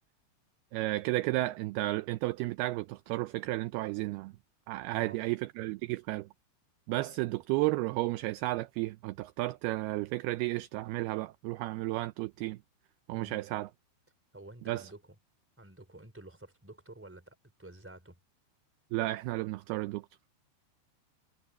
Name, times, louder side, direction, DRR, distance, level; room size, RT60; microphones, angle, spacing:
voice 1, 0.7-4.3 4.7-6.3 6.9-12.6 13.1-13.7 14.7-14.8 18.9-20.0, right 19 dB, 80° right, 2.3 m, -33 dB
voice 2, 14.3-15.2 15.6-18.2, right 2 dB, 5° right, 3.5 m, -50 dB
omnidirectional pair, 5.0 m